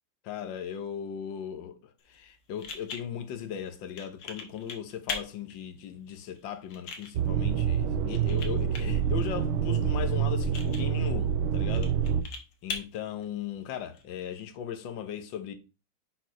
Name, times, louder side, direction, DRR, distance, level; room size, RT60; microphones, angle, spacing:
voice 1, 0.2-11.9 12.6-15.5, left 9 dB, 65° left, 1.6 m, -38 dB
sound 1, 2.0-14.0, left 5 dB, 85° left, 2.1 m, -43 dB
sound 2, 7.2-12.2, right 8 dB, 90° right, 1.6 m, -27 dB
6.3 x 4.3 x 5.1 m
omnidirectional pair, 2.3 m